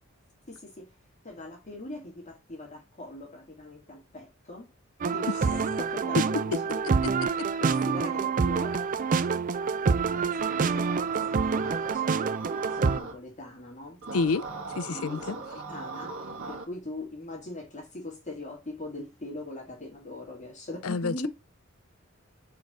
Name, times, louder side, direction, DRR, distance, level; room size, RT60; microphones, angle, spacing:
voice 1, 0.5-0.9 1.2-4.7 5.1-7.0 7.6-9.4 10.0-12.3 12.7-14.0 14.9-21.3, left 2 dB, 35° left, 2.3 m, -41 dB
sound 1, 5.0-13.0, right 5 dB, 40° right, 0.4 m, -27 dB
sound 2, 10.4-13.1 14.0-16.6, right 3 dB, 60° right, 2.0 m, -40 dB
voice 2, 14.1-14.4 14.8-15.4 20.8-21.3, left 4 dB, 75° left, 0.5 m, -28 dB
4.8 x 4.8 x 4.3 m
head